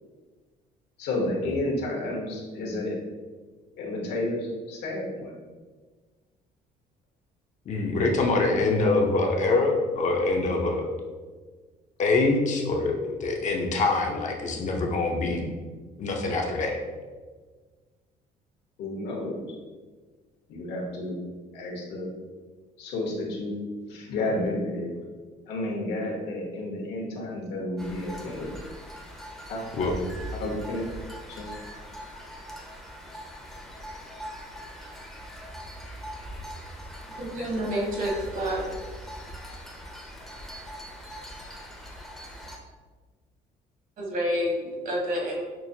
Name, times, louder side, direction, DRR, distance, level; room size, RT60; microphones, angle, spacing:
voice 1, 1.0-3.0 3.8-5.3 18.8-19.4 20.5-21.2 21.5-22.1 22.8-23.6 23.9-25.0 25.5-28.5 29.5-29.6 30.3-30.9 31.3-31.5, left 1 dB, 80° left, -2 dB, 1.1 m, -31 dB
voice 2, 7.7-10.9 12.0-15.5 16.0-16.8 29.7-29.9, left 3 dB, 45° left, 1 dB, 0.6 m, -24 dB
sound 1, 27.8-42.6, equal, ahead, 0.6 m, -41 dB
voice 3, 37.2-38.6 44.0-45.4, equal, 50° right, -2 dB, 1.2 m, -28 dB
5.9 x 2.1 x 2.7 m, 1.4 s
cardioid pair, 110°, 17 cm